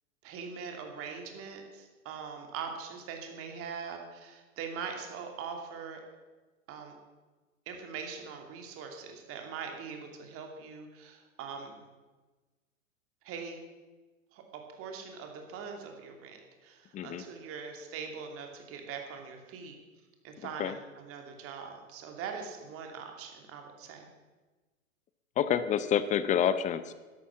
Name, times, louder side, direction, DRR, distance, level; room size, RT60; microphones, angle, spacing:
voice 1, 0.2-6.0 6.7-6.9 7.7-11.7 13.2-13.6 14.3-19.8 20.2-24.1, right 6 dB, 35° right, 3 dB, 2.7 m, -42 dB
voice 2, 25.4-26.9, left 9 dB, 20° left, 13 dB, 0.6 m, -28 dB
12.5 x 11.5 x 7.3 m, 1.3 s
figure-of-eight pair, 100°, 41 cm